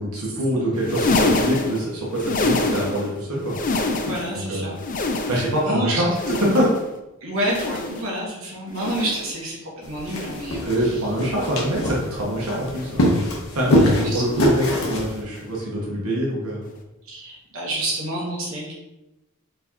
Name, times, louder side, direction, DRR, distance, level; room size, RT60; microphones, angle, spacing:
voice 1, 0.0-3.5 4.3-4.8 5.3-6.1 6.5-6.7 10.6-13.3 13.5-16.6, equal, 85° right, -4 dB, 1.0 m, -24 dB
sound 1, 0.7-3.1 3.4-4.4 4.7-5.7 6.1-6.9 7.4-8.1 8.7-9.4 10.0-10.6 11.3-11.9 12.7-13.1 14.0-14.3 15.3-15.5 16.7-16.8, left 3 dB, 35° left, 0.4 m, -27 dB
voice 2, 4.0-4.7 5.6-5.9 7.2-11.0 13.7-14.2 17.0-18.7, right 1 dB, 60° right, -3 dB, 1.1 m, -28 dB
sound 2, 9.8-15.2, equal, 65° left, 0.9 m, -24 dB
4.4 x 3.3 x 2.8 m, 0.97 s
head